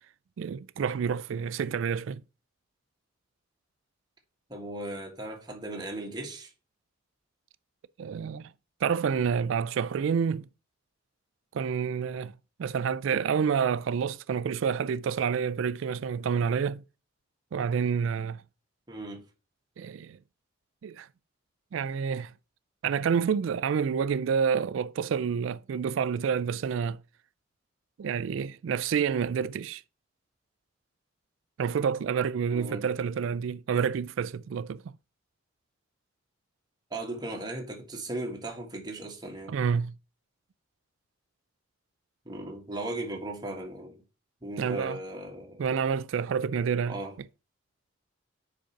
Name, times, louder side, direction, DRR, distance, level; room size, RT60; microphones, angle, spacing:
voice 1, 0.4-2.2 8.0-8.5 8.8-10.5 11.5-12.3 12.6-16.8 17.5-18.4 19.8-20.2 20.8-21.1 21.7-22.3 22.8-27.0 28.0-29.8 31.6-34.8 39.5-39.9 44.6-45.0 45.6-47.0, right 6 dB, 75° right, 0.3 m, -28 dB
voice 2, 4.5-6.5 18.9-19.2 32.5-32.9 36.9-39.6 42.2-44.0 44.4-45.6 46.9-47.1, right 1 dB, 20° right, 1.6 m, -37 dB
5.2 x 5.2 x 5.7 m
head